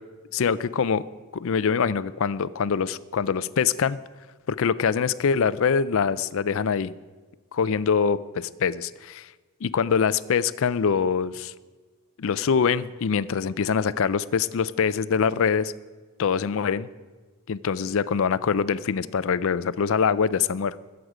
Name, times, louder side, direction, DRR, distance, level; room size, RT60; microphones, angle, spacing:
voice 1, 0.3-1.0 1.3-4.0 4.5-6.9 7.5-9.3 9.6-11.5 12.2-15.7 16.2-16.9 17.5-20.8, left 6 dB, 65° left, 16 dB, 0.4 m, -24 dB
21.0 x 8.0 x 5.0 m, 1.4 s
head